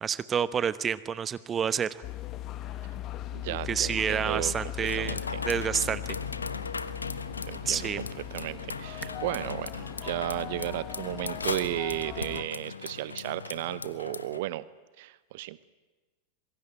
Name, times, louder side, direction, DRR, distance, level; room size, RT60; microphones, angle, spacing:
voice 1, 0.0-2.0 3.5-5.2 5.4-6.0 7.7-8.0, right 7 dB, 20° right, 16 dB, 1.0 m, -29 dB
sound 1, 2.0-12.4, left 12 dB, 35° left, 1.5 m, -39 dB
voice 2, 3.3-4.5 4.9-5.4 7.5-14.7 15.0-15.6, right 16 dB, 50° right, 18 dB, 0.9 m, -34 dB
sound 2, 4.9-14.4, left 4 dB, 75° left, 1.1 m, -37 dB
26.5 x 22.5 x 9.5 m, 1.2 s
figure-of-eight pair, 90°, 0 cm